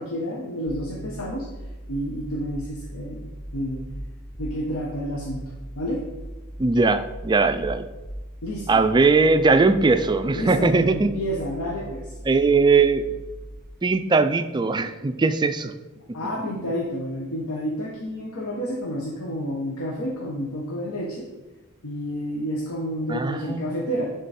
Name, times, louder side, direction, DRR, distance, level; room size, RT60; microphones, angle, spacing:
voice 1, 0.0-1.5 1.9-3.8 4.4-5.4 5.7-6.1 8.4-8.8 10.3-12.1 16.1-21.3 21.8-24.1, equal, 70° left, -2 dB, 1.1 m, -30 dB
sound 1, 0.7-13.6, equal, 40° left, 1.3 m, -39 dB
voice 2, 6.6-7.9 8.7-11.1 12.3-13.1 13.8-15.7 23.1-23.6, right 3 dB, 20° right, 9 dB, 0.3 m, -20 dB
10.5 x 3.9 x 4.2 m, 1.1 s
head